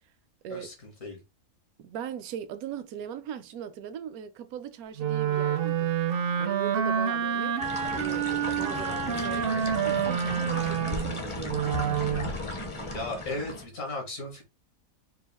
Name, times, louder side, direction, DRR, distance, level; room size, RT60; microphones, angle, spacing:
voice 1, 0.5-1.2 12.9-14.4, left 2 dB, 70° left, 1.8 m, -36 dB
voice 2, 1.8-5.9 6.4-7.6 7.9-11.9, right 9 dB, 85° right, 1.1 m, -39 dB
Wind instrument woodwind instrument, 5.0-12.3, right 8 dB, 65° right, 0.6 m, -28 dB
sound 1, 7.6-13.6, left 2 dB, 30° left, 0.6 m, -36 dB
4.6 x 2.4 x 3.4 m
omnidirectional pair, 1.5 m